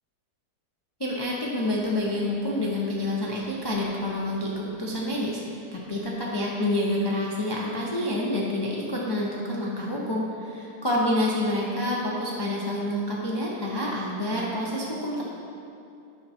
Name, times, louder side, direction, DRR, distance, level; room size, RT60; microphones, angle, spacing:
voice 1, 1.0-15.2, left 1 dB, 25° left, -5 dB, 0.5 m, -28 dB
9.3 x 6.0 x 4.3 m, 2.7 s
omnidirectional pair, 1.7 m